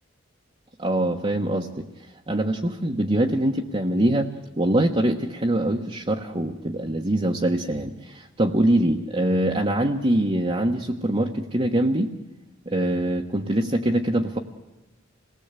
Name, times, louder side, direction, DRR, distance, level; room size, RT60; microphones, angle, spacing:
voice 1, 0.8-1.9 2.3-4.3 4.6-12.1 12.7-14.4, right 1 dB, 30° right, 0 dB, 1.3 m, -23 dB
27.5 x 19.0 x 8.3 m, 1.0 s
head